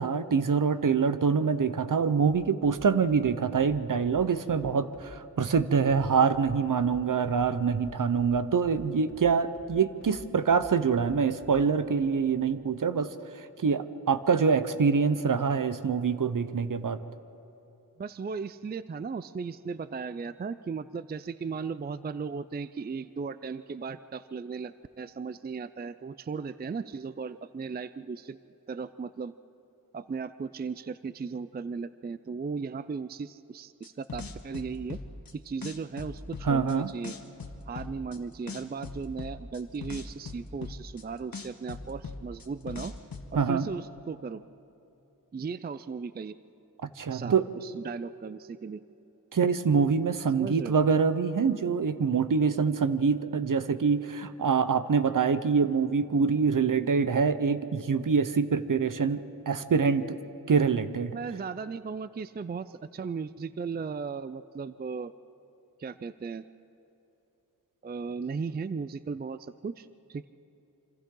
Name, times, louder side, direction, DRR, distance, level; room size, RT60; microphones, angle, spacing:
voice 1, 0.0-13.1 13.6-17.0 36.4-36.9 43.3-43.7 47.0-47.4 49.3-60.2 60.5-61.1, right 5 dB, 60° right, 12 dB, 0.8 m, -25 dB
sound 1, 2.3-11.9, equal, 5° left, 3.7 m, -52 dB
voice 2, 18.0-28.4 28.7-29.3 29.9-35.0 35.3-37.2 37.7-42.9 43.3-44.4 45.3-46.3 47.1-48.8 50.4-50.8 61.1-65.1 65.8-66.4 67.8-70.3, right 5 dB, 30° right, 14 dB, 0.4 m, -36 dB
sound 2, 33.8-35.3 35.6-36.7 37.0-38.2 38.5-41.0 41.3-43.3, left 4 dB, 70° left, 1.4 m, -39 dB
27.0 x 26.0 x 3.8 m, 3.0 s
wide cardioid pair, 80°, 36 cm